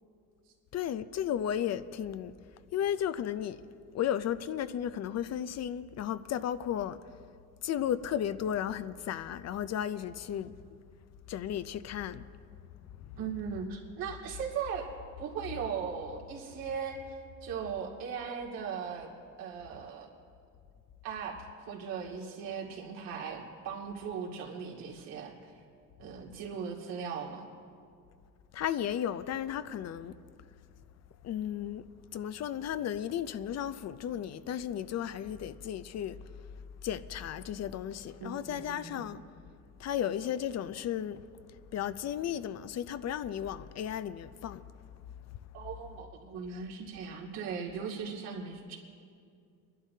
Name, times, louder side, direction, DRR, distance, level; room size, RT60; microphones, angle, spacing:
voice 1, 0.7-2.3 2.7-3.6 3.9-7.0 7.6-10.5 11.3-12.3 12.8-13.2 28.5-30.1 31.2-31.9 32.1-36.2 36.8-39.2 39.8-41.2 41.7-44.6 45.3-45.4, left 10 dB, 50° left, 0.5 m, -34 dB
voice 2, 13.2-14.8 15.2-19.1 19.4-20.1 21.0-25.5 26.0-27.5 38.2-39.1 45.5-48.8, right 6 dB, 85° right, 2.4 m, -38 dB
24.5 x 11.5 x 2.8 m
cardioid pair, 95°, 35 cm